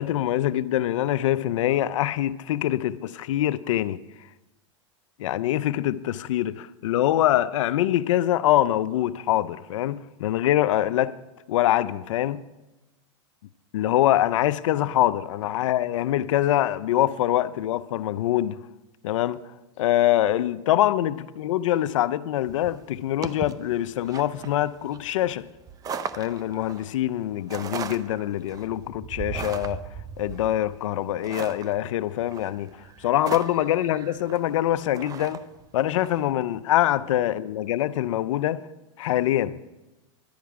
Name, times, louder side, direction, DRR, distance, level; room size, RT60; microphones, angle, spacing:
voice 1, 0.0-4.0 5.2-11.2 11.5-12.4 13.7-18.6 19.0-19.4 19.8-25.5 26.2-29.8 30.2-35.4 35.7-38.7 39.0-39.6, left 13 dB, 80° left, 0.5 m, -24 dB
sound 1, 22.5-36.2, right 6 dB, 25° right, 0.5 m, -38 dB
12.0 x 10.5 x 4.8 m
supercardioid pair, 125°, 16 cm